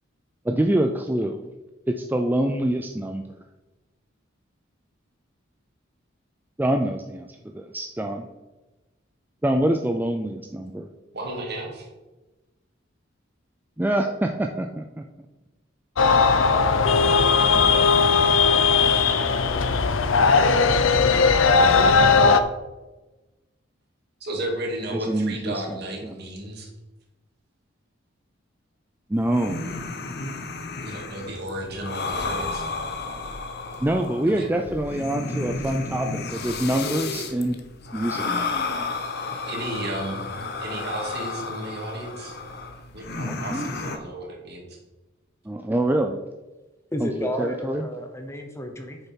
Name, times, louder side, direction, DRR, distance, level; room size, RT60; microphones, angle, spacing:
voice 1, 0.4-1.4 1.9-3.2 6.6-7.3 7.5-8.2 9.4-10.9 13.8-15.0 24.9-25.6 26.0-26.2 29.1-29.6 33.8-37.6 37.9-38.4 43.3-43.7 45.5-46.2 47.0-47.9, right 1 dB, 10° right, 4 dB, 0.4 m, -25 dB
voice 2, 11.1-11.9 24.2-26.7 30.8-32.6 34.2-34.5 39.4-40.3 40.6-42.4 42.9-44.8, right 1 dB, 55° right, 0 dB, 2.4 m, -33 dB
sound 1, 16.0-22.4, left 4 dB, 80° left, 0.7 m, -18 dB
sound 2, 29.1-44.0, left 3 dB, 55° left, 1.0 m, -32 dB
voice 3, 46.9-49.0, equal, 15° left, 4 dB, 0.9 m, -31 dB
9.2 x 6.7 x 4.6 m, 1.1 s
head